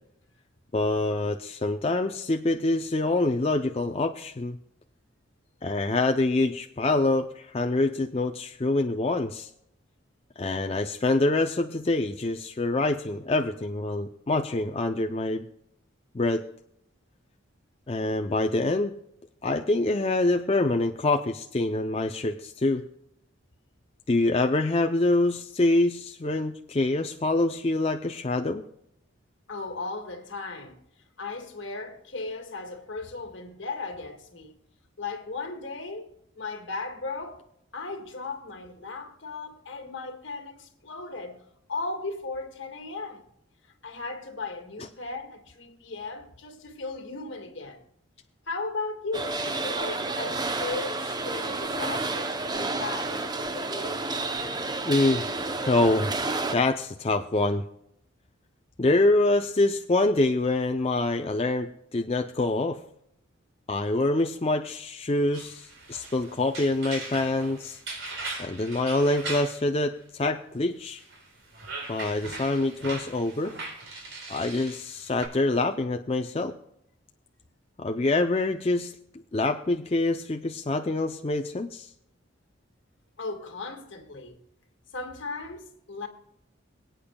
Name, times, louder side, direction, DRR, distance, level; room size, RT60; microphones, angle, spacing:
voice 1, 0.7-4.6 5.6-9.5 10.4-15.5 16.1-16.4 17.9-18.9 19.4-22.8 24.1-28.6 54.9-55.2 55.6-56.1 56.5-57.6 58.8-62.8 63.7-67.8 68.4-71.0 71.9-73.5 74.3-76.5 77.8-78.9 79.3-81.9, left 2 dB, 30° left, 0.4 m, -25 dB
voice 2, 29.5-30.8 31.2-34.6 35.0-37.4 37.7-41.4 41.7-43.3 43.8-47.8 48.5-54.0 83.2-84.4 84.9-86.1, left 3 dB, 70° left, 1.7 m, -36 dB
sound 1, 49.1-56.6, right 3 dB, 20° right, 0.6 m, -30 dB
sound 2, 65.3-69.6 70.9-75.3, right 3 dB, 75° right, 3.7 m, -39 dB
23.0 x 8.7 x 2.2 m
head